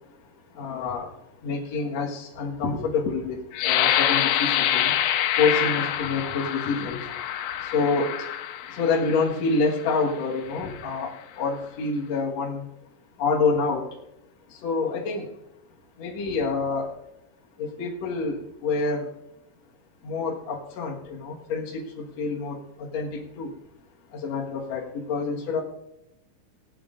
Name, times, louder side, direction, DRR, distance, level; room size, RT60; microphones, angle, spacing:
voice 1, 0.6-1.1 1.4-4.9 5.4-7.0 7.6-8.1 8.7-12.6 13.2-13.9 14.6-15.3 16.0-16.9 17.6-19.1 20.0-23.5 24.1-25.6, left 4 dB, 55° left, -3 dB, 1.9 m, -27 dB
sound 1, 3.5-9.2 9.9-10.0 10.5-10.9, left 11 dB, 85° left, 3.0 m, -26 dB
19.0 x 8.7 x 3.8 m, 0.86 s
omnidirectional pair, 5.2 m